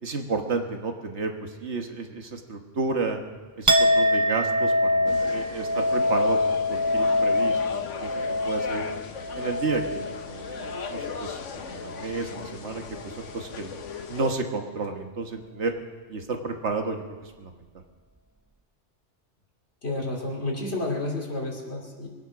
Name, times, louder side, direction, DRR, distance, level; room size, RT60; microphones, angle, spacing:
voice 1, 0.0-3.2 3.6-8.1 8.4-8.9 9.3-13.7 14.1-15.7 16.1-17.7, right 4 dB, 70° right, 4 dB, 1.6 m, -32 dB
Chink clink, 3.7-11.4 11.7-12.4, left 1 dB, 25° right, 0.4 m, -25 dB
sound 1, 5.1-14.3, left 6 dB, 90° left, 1.3 m, -38 dB
voice 2, 19.8-22.1, left 2 dB, 65° left, -1 dB, 3.1 m, -30 dB
22.5 x 9.6 x 6.1 m, 1.4 s
omnidirectional pair, 1.2 m